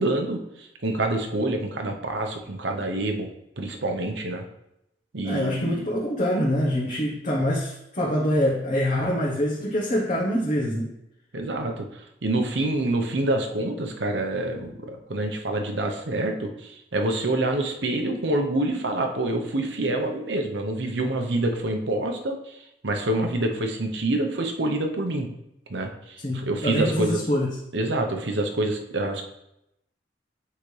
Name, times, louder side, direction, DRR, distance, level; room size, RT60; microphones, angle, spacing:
voice 1, 0.0-3.3 3.6-4.4 5.1-5.9 11.3-25.3 25.7-27.2 27.7-29.2, right 2 dB, 70° right, 4 dB, 0.9 m, -27 dB
voice 2, 5.2-10.9 26.2-27.6, equal, 40° left, -4 dB, 1.1 m, -25 dB
8.5 x 5.0 x 3.3 m, 0.84 s
head